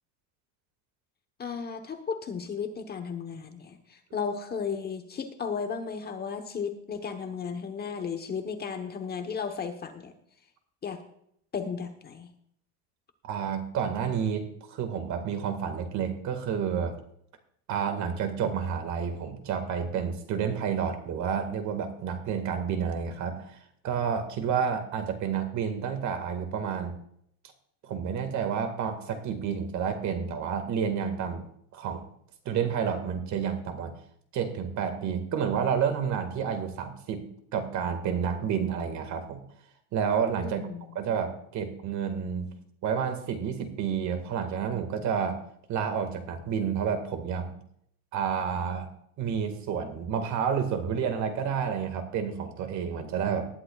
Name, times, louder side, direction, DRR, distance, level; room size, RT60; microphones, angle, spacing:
voice 1, 1.4-10.1 10.8-11.0 11.5-12.3 40.4-41.0, left 6 dB, 25° left, 6 dB, 1.1 m, -34 dB
voice 2, 13.2-17.0 17.7-23.6 23.8-27.0 27.8-31.4 31.7-32.0 32.5-33.9 34.3-39.4 39.9-40.7 41.0-42.5 42.8-45.4 45.7-47.6 48.1-48.9 49.2-53.5, right 7 dB, 50° right, 8 dB, 1.9 m, -30 dB
19.0 x 11.5 x 2.4 m, 0.69 s
cardioid pair, 150°, 38 cm